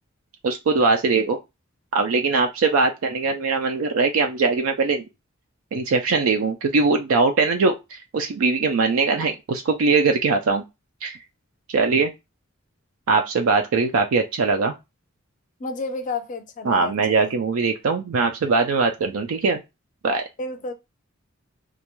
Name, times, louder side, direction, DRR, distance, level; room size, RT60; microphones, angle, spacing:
voice 1, 0.4-1.4 1.9-5.0 5.7-10.6 11.0-11.2 11.7-12.1 13.1-14.8 16.7-19.6 20.0-20.3, right 4 dB, 85° right, 0.4 m, -21 dB
voice 2, 15.6-17.4 20.4-20.7, left 3 dB, 40° left, 0.4 m, -31 dB
2.4 x 2.2 x 2.9 m
head